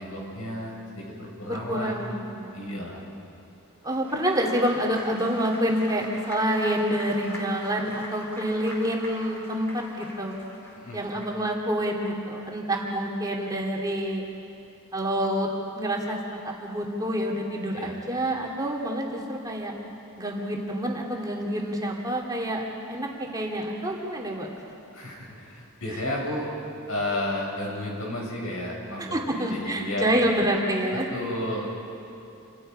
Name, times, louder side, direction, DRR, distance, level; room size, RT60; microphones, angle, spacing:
voice 1, 0.0-1.9 2.5-3.0 10.7-11.0 17.7-17.9 24.9-26.5 26.9-30.1 30.9-31.9, left 1 dB, 75° left, -2 dB, 6.9 m, -32 dB
voice 2, 1.5-3.0 3.8-10.3 10.9-14.2 14.9-15.5 15.8-16.2 16.4-19.7 20.2-24.5 29.0-31.1, equal, 15° right, -2 dB, 2.6 m, -27 dB
Applause, 3.7-11.6, equal, 10° left, 4.3 m, -43 dB
28.5 x 26.0 x 5.6 m, 2.7 s
head